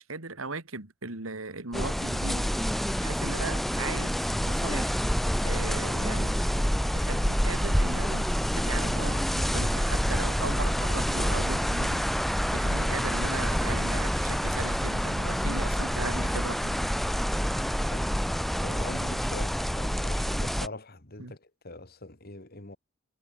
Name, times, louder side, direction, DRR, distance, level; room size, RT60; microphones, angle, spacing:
voice 1, 0.0-2.7 3.0-4.2 4.4-4.9 5.4-6.3 6.9-12.0 12.5-16.8 21.2-21.4, right 3 dB, 75° right, 2.7 m, -37 dB
sound 1, 1.7-20.7, equal, ahead, 0.6 m, -27 dB
voice 2, 18.6-22.8, left 2 dB, 45° left, 2.8 m, -43 dB
head